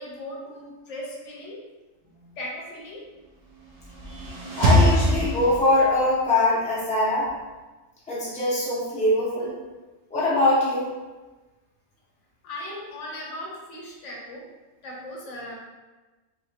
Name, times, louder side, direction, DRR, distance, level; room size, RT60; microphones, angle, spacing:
voice 1, 0.0-1.6 2.4-3.0 4.0-4.6 12.4-14.4 14.8-15.5, left 1 dB, 70° left, -3 dB, 1.0 m, -38 dB
sound 1, 3.6-6.0, equal, 65° right, 0.4 m, -22 dB
voice 2, 4.6-7.3 8.1-9.5 10.1-10.9, left 1 dB, 10° left, -7 dB, 0.5 m, -22 dB
3.1 x 2.7 x 2.5 m, 1.2 s
omnidirectional pair, 1.3 m